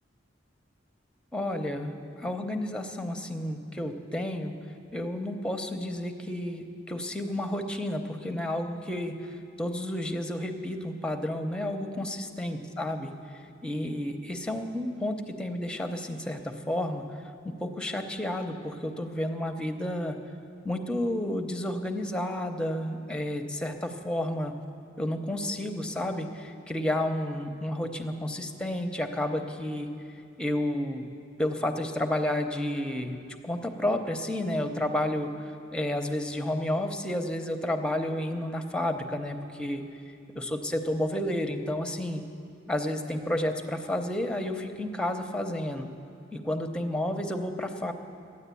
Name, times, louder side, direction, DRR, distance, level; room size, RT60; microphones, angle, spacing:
voice 1, 1.3-1.9 2.2-4.5 4.9-9.3 9.6-13.1 13.6-17.0 17.4-20.2 20.6-24.5 25.0-29.9 30.4-31.1 31.4-35.3 35.7-39.8 40.3-42.2 42.7-45.9 46.3-47.9, left 1 dB, 5° left, 6 dB, 0.8 m, -31 dB
13.5 x 9.7 x 8.3 m, 2.5 s
head